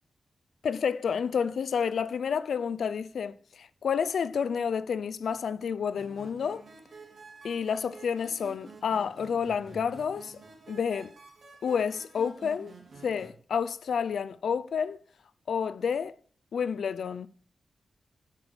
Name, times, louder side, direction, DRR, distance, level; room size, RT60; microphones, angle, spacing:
voice 1, 0.6-6.6 7.4-10.4 10.7-11.1 11.6-12.7 13.0-15.0 15.5-16.2 16.5-17.3, left 6 dB, 90° left, 0.7 m, -30 dB
sound 1, 6.0-13.3, right 4 dB, 50° right, 3.9 m, -49 dB
10.5 x 8.5 x 6.7 m
wide cardioid pair, 175°, 0 cm